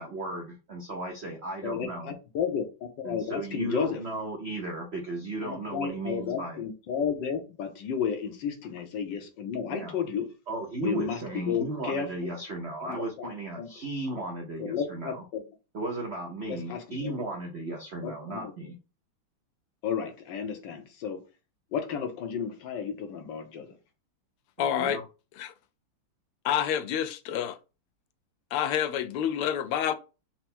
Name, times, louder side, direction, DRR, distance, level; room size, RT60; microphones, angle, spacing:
voice 1, 0.0-2.1 3.0-6.6 9.7-9.9 10.5-15.2 15.7-18.7 24.8-25.0, right 2 dB, 80° right, 0.5 m, -35 dB
voice 2, 1.6-4.0 5.4-10.3 10.8-12.3 12.8-13.7 14.6-15.4 16.5-17.1 18.0-18.5 19.8-21.2 21.7-23.7, left 7 dB, 65° left, 1.3 m, -33 dB
voice 3, 24.6-25.0 25.4-25.5 26.4-27.6 28.5-29.9, left 9 dB, 80° left, 1.5 m, -28 dB
4.4 x 2.1 x 4.3 m
omnidirectional pair, 2.4 m